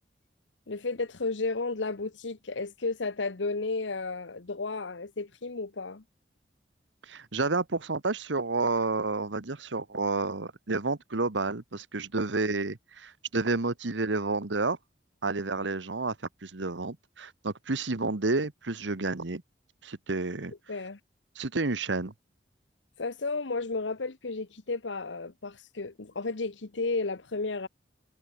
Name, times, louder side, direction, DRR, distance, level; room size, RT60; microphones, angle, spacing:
voice 1, 0.7-6.0 20.7-21.0 23.0-27.7, left 3 dB, 85° left, 1.1 m, -33 dB
voice 2, 7.1-14.8 15.2-16.1 16.4-19.4 19.8-20.5 21.3-22.1, right 3 dB, 85° right, 1.3 m, -30 dB
head